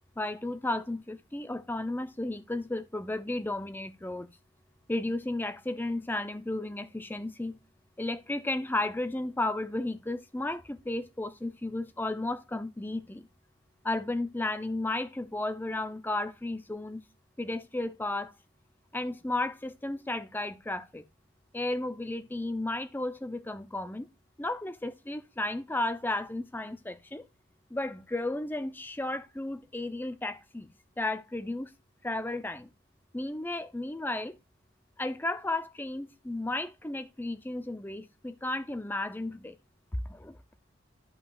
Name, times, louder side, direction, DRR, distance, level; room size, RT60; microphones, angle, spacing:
voice 1, 0.2-4.3 4.9-7.6 8.0-13.3 13.8-17.0 17.4-18.3 18.9-21.0 21.5-24.1 24.4-27.3 27.7-30.7 31.0-31.7 32.0-32.7 33.1-34.4 35.0-39.6 40.1-40.4, left 2 dB, 10° left, 0.5 m, -33 dB
11.5 x 5.6 x 2.4 m
head